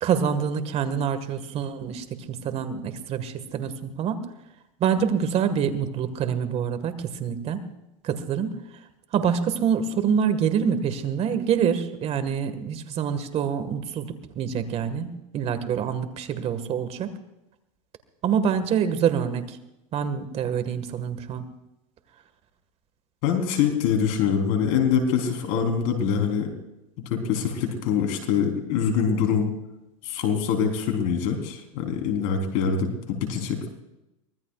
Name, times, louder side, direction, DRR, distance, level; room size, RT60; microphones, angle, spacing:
voice 1, 0.0-4.2 4.8-7.7 8.0-8.6 9.1-17.1 18.2-19.6 19.9-21.5, right 7 dB, 40° right, 10 dB, 1.8 m, -26 dB
voice 2, 23.2-26.5 27.1-29.5 30.0-33.7, left 7 dB, 60° left, 4 dB, 3.9 m, -24 dB
24.0 x 20.0 x 2.5 m, 0.94 s
hypercardioid pair, 110°, 17 cm